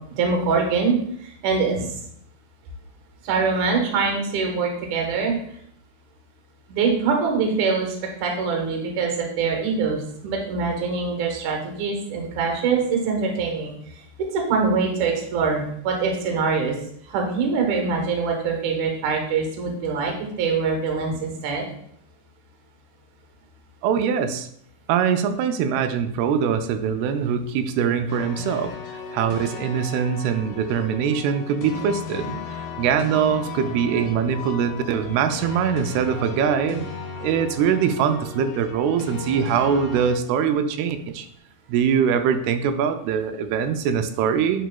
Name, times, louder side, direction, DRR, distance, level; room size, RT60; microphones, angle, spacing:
voice 1, 0.1-1.0 1.4-1.9 3.2-5.3 6.7-13.7 14.3-16.7 17.1-21.7, right 5 dB, 65° right, 1 dB, 2.2 m, -24 dB
voice 2, 23.8-24.5 24.9-28.7 29.1-36.9 37.2-41.3 41.7-44.7, right 7 dB, 90° right, 8 dB, 2.5 m, -23 dB
sound 1, 28.1-40.2, left 5 dB, 85° left, 3.4 m, -36 dB
10.0 x 4.6 x 2.3 m, 0.70 s
omnidirectional pair, 4.5 m